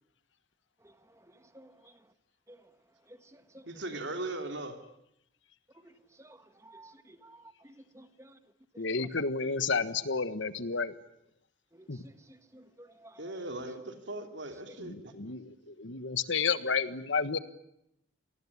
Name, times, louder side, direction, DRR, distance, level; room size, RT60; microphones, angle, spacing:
voice 1, 0.8-2.1 2.5-2.7 3.1-3.7 5.8-8.4 8.7-9.1 11.7-13.3 14.7-14.8, right 1 dB, 15° right, 1.6 m, -55 dB
voice 2, 3.7-4.8 13.2-15.1, right 2 dB, 65° right, 3.3 m, -38 dB
voice 3, 8.8-10.9 11.9-12.0 14.8-17.4, left 5 dB, 80° left, 1.5 m, -31 dB
28.0 x 20.0 x 9.7 m
head